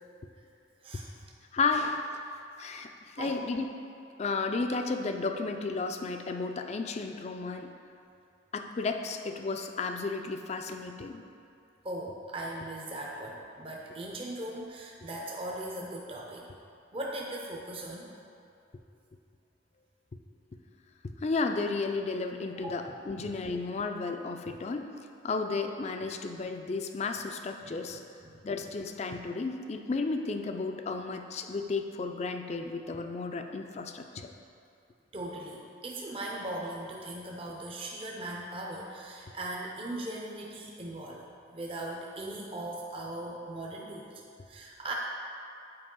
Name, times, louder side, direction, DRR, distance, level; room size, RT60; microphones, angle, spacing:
voice 1, 1.5-2.1 2.6-2.9 3.2-3.7 4.2-7.7 8.5-11.2 21.2-24.9 25.2-28.0 28.4-34.3, left 3 dB, 35° left, 6 dB, 0.4 m, -33 dB
voice 2, 11.8-16.5 16.9-18.1 22.6-22.9 27.6-28.4 35.1-41.2 41.5-44.2 44.5-44.9, right 1 dB, 30° right, -2 dB, 0.6 m, -39 dB
7.6 x 4.8 x 3.7 m, 2.5 s
head